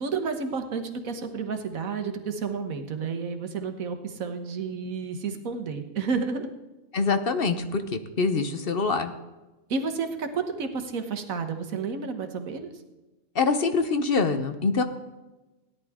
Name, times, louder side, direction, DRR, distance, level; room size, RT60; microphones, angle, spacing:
voice 1, 0.0-6.5 9.7-12.7, right 5 dB, 80° right, 7 dB, 1.6 m, -31 dB
voice 2, 6.9-9.1 13.3-14.8, left 4 dB, 50° left, 9 dB, 0.9 m, -25 dB
17.0 x 10.5 x 3.6 m, 1.1 s
omnidirectional pair, 1.4 m